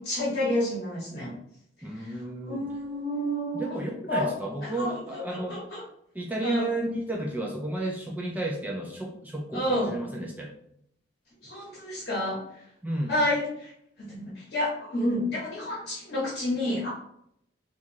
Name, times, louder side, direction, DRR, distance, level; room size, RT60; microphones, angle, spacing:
voice 1, 0.0-1.3 2.5-3.7 4.1-4.3 4.8-4.9 5.3-5.8 6.4-6.7 9.5-10.0 11.4-12.4 13.1-13.7 14.1-16.9, left 1 dB, 50° left, -6 dB, 0.9 m, -29 dB
voice 2, 1.8-2.6 3.5-5.6 6.1-10.5 12.8-13.2, right 1 dB, 10° right, -1 dB, 0.3 m, -32 dB
2.9 x 2.4 x 2.6 m, 0.72 s
head